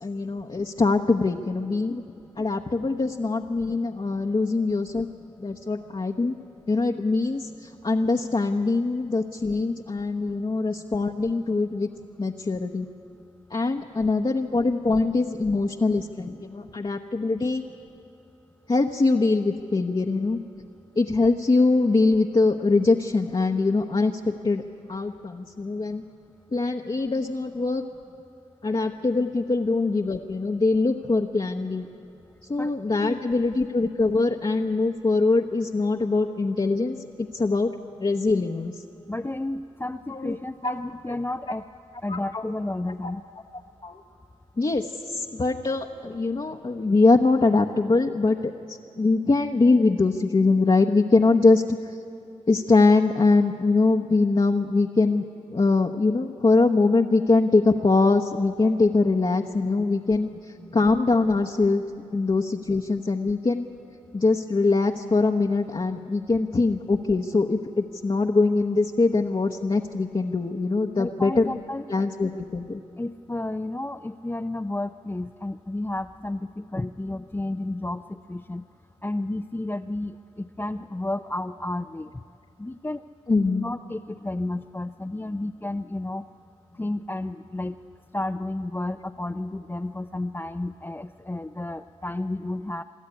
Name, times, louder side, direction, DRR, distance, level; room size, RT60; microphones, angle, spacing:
voice 1, 0.0-2.0 2.4-5.1 5.4-6.3 6.7-11.9 12.2-12.9 13.5-17.6 18.7-20.4 21.0-24.6 24.9-26.0 26.5-27.8 28.6-31.9 32.5-37.0 37.3-37.7 38.0-38.7 40.1-40.3 40.6-40.8 42.1-42.4 43.0-43.1 43.8-44.0 44.6-51.9 52.5-61.8 62.1-63.7 64.1-71.5 71.9-72.8 83.3-83.6, left 3 dB, 40° left, 2 dB, 1.0 m, -23 dB
voice 2, 39.1-41.6 42.0-43.2 59.8-59.9 60.6-60.8 71.0-71.9 73.0-78.6 79.0-82.1 82.6-83.0 83.5-86.2 86.8-87.8 88.1-92.8, left 2 dB, 15° left, 6 dB, 0.5 m, -31 dB
22.0 x 13.5 x 9.9 m, 2.7 s
cardioid pair, 40°, 13 cm